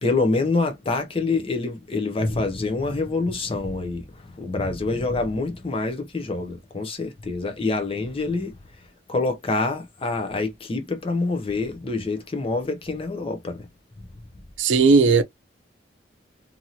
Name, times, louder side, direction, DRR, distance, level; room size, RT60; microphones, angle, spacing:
voice 1, 0.0-8.5 9.1-13.6, left 3 dB, 30° left, 0.6 m, -26 dB
voice 2, 14.6-15.2, right 4 dB, 85° right, 0.5 m, -16 dB
2.8 x 2.6 x 2.7 m
head